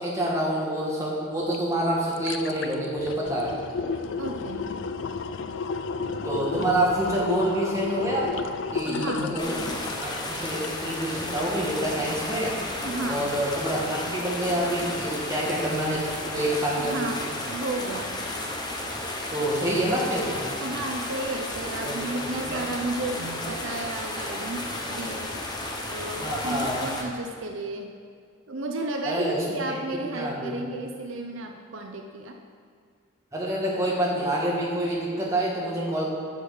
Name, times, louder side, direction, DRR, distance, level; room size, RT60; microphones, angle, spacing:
voice 1, 0.0-3.6 6.2-8.3 8.7-12.5 13.1-17.1 19.3-20.4 21.8-22.0 22.5-22.6 26.2-26.8 29.0-29.4 29.9-30.5 33.3-36.1, right 1 dB, 15° right, -4 dB, 1.5 m, -27 dB
sound 1, 1.5-1.6 1.9-11.0 11.4-11.5, left 4 dB, 60° left, 0.4 m, -32 dB
voice 2, 4.2-4.7 8.8-9.4 12.8-13.3 16.8-17.2 17.5-18.2 20.6-25.3 25.8-27.9 28.5-32.4, right 2 dB, 65° right, 3 dB, 0.6 m, -33 dB
sound 2, 9.4-27.0, left 1 dB, 20° left, 0.9 m, -33 dB
8.0 x 6.2 x 6.5 m, 2.1 s
head